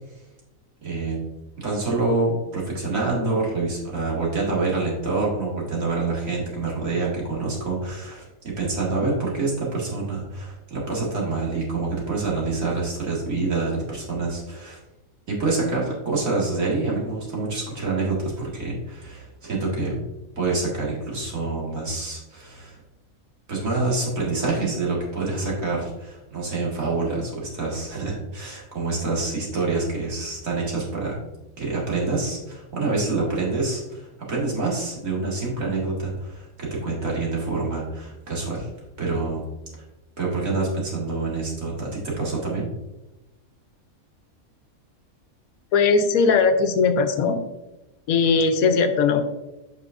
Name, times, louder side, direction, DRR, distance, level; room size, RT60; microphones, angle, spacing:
voice 1, 0.8-1.2 1.6-14.8 15.3-20.0 20.3-22.8 23.5-31.2 31.6-38.7 39.0-39.4 40.2-42.6, right 3 dB, 70° right, -4 dB, 2.3 m, -26 dB
voice 2, 45.7-47.4 48.1-49.2, left 5 dB, 80° left, 8 dB, 1.1 m, -19 dB
8.1 x 5.5 x 2.5 m, 0.99 s
omnidirectional pair, 1.5 m